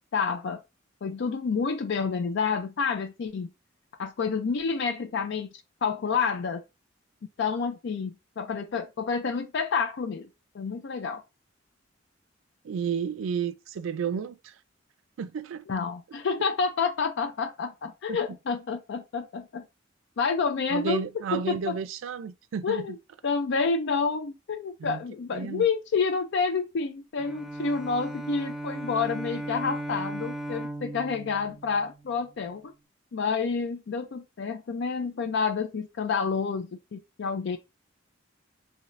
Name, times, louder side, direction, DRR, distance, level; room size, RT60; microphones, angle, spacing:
voice 1, 0.1-0.6 1.0-3.5 4.0-5.5 5.8-6.6 7.4-10.3 10.5-11.2 15.7-19.6 20.2-21.0 21.3-21.8 22.6-23.0 23.2-32.7 33.1-37.6, left 5 dB, 65° left, 0.4 m, -29 dB
voice 2, 12.6-14.5 15.2-15.6 18.1-18.2 20.7-23.0 24.8-25.0 25.3-25.6, right 7 dB, 80° right, 0.3 m, -32 dB
Bowed string instrument, 27.2-32.4, right 1 dB, ahead, 0.3 m, -36 dB
2.7 x 2.5 x 3.1 m
head